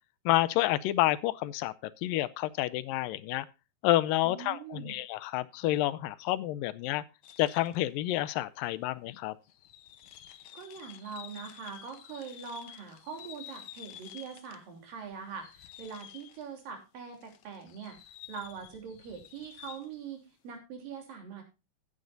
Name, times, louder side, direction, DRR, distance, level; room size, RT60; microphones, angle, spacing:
voice 1, 0.3-1.7 2.0-3.5 3.8-7.0 7.4-9.3, left 15 dB, 85° left, 2.4 m, -29 dB
voice 2, 4.2-5.0 10.5-18.0 18.3-21.4, right 6 dB, 80° right, 5.0 m, -43 dB
sound 1, 7.2-7.9 8.7-8.8 9.4-14.7 15.1-16.7 17.1-20.0, left 11 dB, 70° left, 1.9 m, -50 dB
15.5 x 9.7 x 2.6 m
omnidirectional pair, 3.9 m